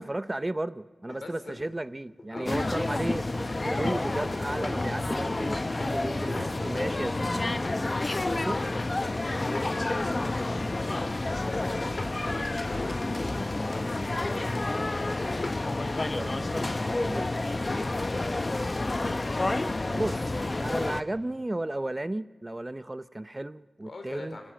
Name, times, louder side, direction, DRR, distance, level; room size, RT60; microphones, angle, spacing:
voice 1, 0.0-7.5 8.3-8.6 16.2-17.3 19.9-20.2 20.6-24.4, right 1 dB, 25° right, 0.6 m, -34 dB
sound 1, 1.1-3.1 3.3-9.2 9.5-10.6 11.5-13.3 15.3-15.6 16.0-16.2 16.5-17.1, left 2 dB, 55° left, 3.6 m, -42 dB
voice 2, 1.2-1.5 2.3-2.6 8.3-9.8 11.2-15.6 17.6-19.2 23.9-24.5, left 3 dB, 75° left, 3.7 m, -44 dB
sound 2, 2.5-21.0, left 2 dB, 40° left, 0.9 m, -29 dB
25.5 x 17.0 x 8.9 m
cardioid pair, 55°, 0 cm